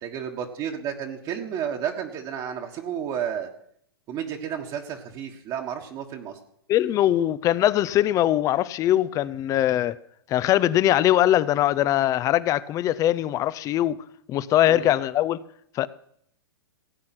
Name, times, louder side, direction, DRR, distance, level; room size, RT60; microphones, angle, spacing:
voice 1, 0.0-3.5 4.1-6.4 14.7-14.9, right 8 dB, 35° right, 1.5 m, -32 dB
voice 2, 6.7-9.9 10.3-14.0 14.3-15.4 15.7-15.9, left 13 dB, 25° left, 0.5 m, -21 dB
16.5 x 8.6 x 6.0 m
hypercardioid pair, 125°, 13 cm